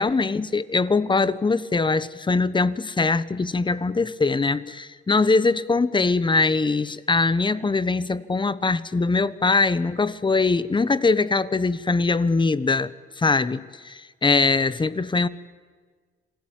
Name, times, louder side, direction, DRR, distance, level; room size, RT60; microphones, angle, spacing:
voice 1, 0.0-15.3, left 3 dB, 25° left, 1.2 m, -22 dB
27.5 x 19.0 x 9.2 m
cardioid pair, 90°, 20 cm